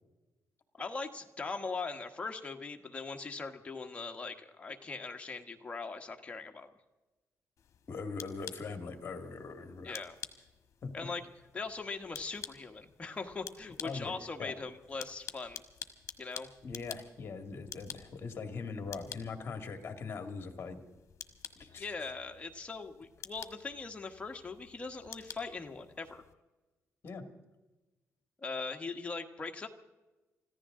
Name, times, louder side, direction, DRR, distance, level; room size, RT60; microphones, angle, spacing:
voice 1, 0.8-6.7 9.8-10.2 10.9-11.2 11.5-15.6 16.2-16.5 21.6-26.2 28.4-29.7, left 4 dB, 20° left, 4 dB, 1.3 m, -40 dB
sound 1, 7.6-26.3, left 8 dB, 60° left, 1.4 m, -50 dB
voice 2, 7.9-10.0 10.8-10.9 13.8-14.1 14.4-14.5 16.6-20.8 21.6-21.9 27.0-27.2, left 4 dB, 40° left, 7 dB, 2.1 m, -41 dB
25.5 x 15.0 x 3.8 m, 1.1 s
cardioid pair, 135°, 6 cm